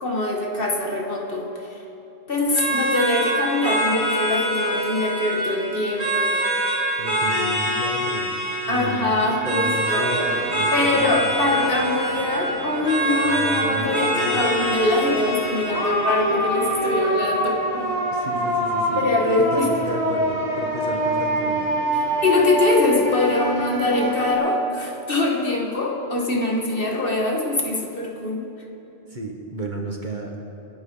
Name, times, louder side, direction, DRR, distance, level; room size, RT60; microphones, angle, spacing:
voice 1, 0.0-1.8 2.3-6.4 8.7-10.1 10.7-18.0 19.0-19.7 21.9-28.4, left 2 dB, 45° left, 0 dB, 1.8 m, -23 dB
sound 1, 2.6-17.5, right 1 dB, 55° right, 3.3 m, -25 dB
voice 2, 7.0-11.4 13.2-14.4 18.1-19.0 19.4-21.7 29.1-30.3, right 1 dB, 40° right, 0 dB, 1.5 m, -33 dB
sound 2, 10.1-24.3, right 1 dB, 80° right, 3.6 m, -26 dB
27.5 x 11.0 x 3.9 m, 3.0 s
omnidirectional pair, 1.3 m